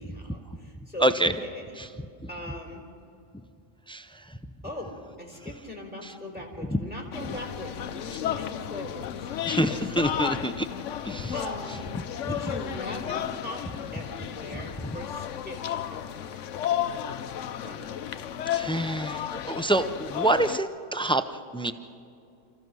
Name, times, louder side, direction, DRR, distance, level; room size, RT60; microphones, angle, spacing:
voice 1, 0.0-1.8 2.3-2.8 4.6-4.9 5.2-10.6 11.3-11.9 12.2-13.6 13.9-15.6 15.9-16.5 17.6-17.9, left 1 dB, 5° right, 0 dB, 3.7 m, -40 dB
voice 2, 1.0-1.3 3.9-4.0 9.5-10.7 11.1-11.3 18.5-19.2 19.5-21.2 21.5-21.7, right 1 dB, 10° left, 10 dB, 0.3 m, -26 dB
sound 1, 7.1-20.6, left 10 dB, 70° left, 1.0 m, -33 dB
30.0 x 15.0 x 6.2 m, 2.6 s
omnidirectional pair, 1.3 m